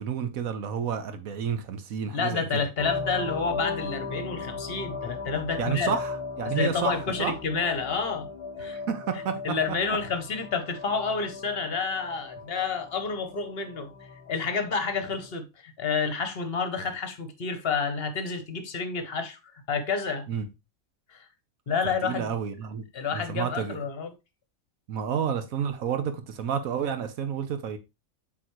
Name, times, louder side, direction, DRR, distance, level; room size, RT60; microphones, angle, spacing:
voice 1, 0.0-2.7 5.6-7.3 8.6-9.6 20.3-20.5 21.8-22.8 23.1-23.8 24.9-27.8, right 7 dB, 90° right, 1.3 m, -30 dB
voice 2, 2.1-6.0 6.5-8.3 8.6-8.8 9.4-13.9 14.3-20.3 21.1-21.3 21.7-22.3 22.9-24.1, left 5 dB, 50° left, 1.0 m, -29 dB
sound 1, 2.8-15.3, left 4 dB, 25° left, 0.9 m, -37 dB
7.8 x 4.1 x 3.0 m
omnidirectional pair, 1.4 m